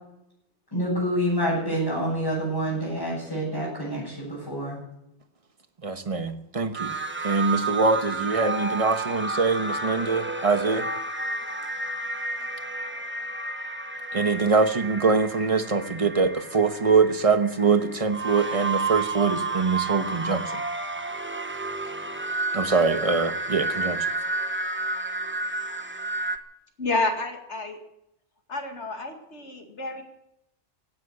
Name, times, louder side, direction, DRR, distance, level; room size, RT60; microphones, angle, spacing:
voice 1, 0.7-4.8, equal, 20° left, -8 dB, 8.1 m, -27 dB
voice 2, 5.8-6.9 7.2-10.9 14.1-20.5 22.5-24.1, right 4 dB, 30° right, 9 dB, 1.2 m, -23 dB
sound 1, 6.7-26.4, right 3 dB, 10° right, 0.9 m, -31 dB
voice 3, 26.8-27.8 28.5-30.0, left 2 dB, 80° left, 4 dB, 2.5 m, -29 dB
17.0 x 10.5 x 8.0 m, 0.83 s
omnidirectional pair, 1.2 m